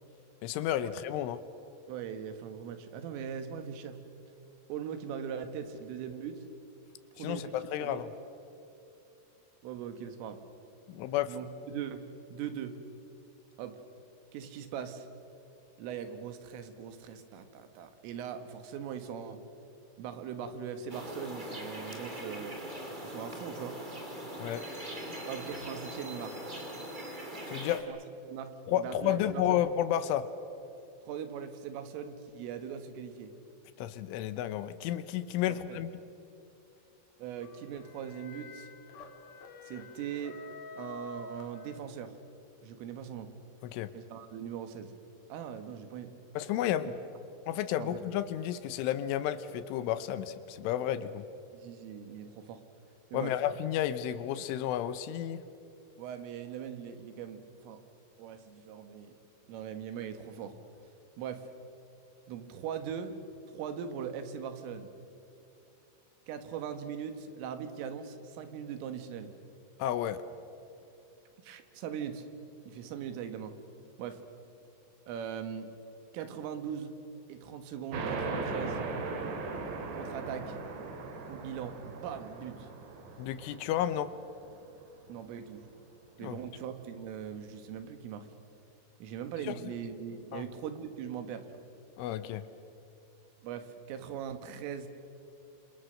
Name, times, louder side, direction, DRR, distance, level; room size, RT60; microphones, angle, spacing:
voice 1, 0.4-1.4 7.2-8.1 10.9-11.4 24.4-24.6 27.5-27.8 28.7-30.3 33.8-35.9 43.6-43.9 46.3-46.9 47.5-51.2 53.1-55.4 69.8-70.2 83.2-84.1 86.2-86.4 89.4-89.7 90.3-90.4 92.0-92.4, left 11 dB, 80° left, 12 dB, 3.3 m, -32 dB
voice 2, 1.9-4.0 4.7-6.4 7.1-8.1 9.6-10.4 11.3-12.7 13.6-13.8 14.3-15.1 15.8-19.4 20.0-22.6 23.0-23.8 25.3-26.4 27.9-28.0 28.2-28.5 28.8-29.6 31.0-33.3 35.5-35.8 37.2-38.7 39.6-40.4 40.8-42.1 42.6-43.3 43.9-44.9 45.3-46.1 47.8-48.0 51.5-52.6 53.1-53.3 56.0-57.8 58.2-59.2 59.5-60.5 61.2-61.5 62.3-63.2 63.5-64.9 66.3-69.3 71.4-72.3 72.7-73.6 74.0-74.2 75.1-75.7 76.1-76.9 77.3-78.8 79.9-80.6 81.3-82.7 85.1-85.7 86.2-88.3 89.0-91.6 93.4-94.9, right 8 dB, 80° right, 8 dB, 4.2 m, -40 dB
sound 1, 20.9-27.8, right 1 dB, 30° right, 0.8 m, -41 dB
sound 2, 37.4-42.2, left 3 dB, 55° left, 2.1 m, -48 dB
sound 3, 77.9-85.1, right 3 dB, 60° right, 4.2 m, -38 dB
27.5 x 27.0 x 6.6 m, 2.8 s
omnidirectional pair, 5.8 m